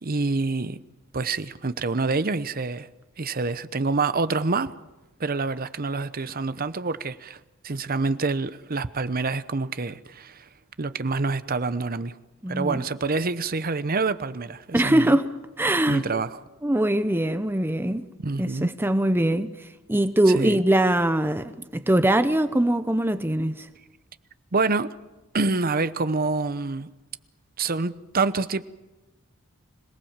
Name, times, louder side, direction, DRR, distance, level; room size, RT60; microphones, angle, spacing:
voice 1, 0.0-0.8 1.1-2.9 3.2-4.7 5.2-7.4 7.6-10.5 10.8-12.1 12.5-15.2 15.9-16.4 18.2-18.7 20.4-20.6 24.5-24.9 25.3-26.9 27.6-28.6, right 3 dB, 45° right, 0.8 m, -26 dB
voice 2, 12.4-12.8 14.7-15.3 15.6-16.1 16.6-18.1 18.4-23.7, right 1 dB, 10° right, 0.7 m, -22 dB
26.0 x 19.0 x 7.4 m
head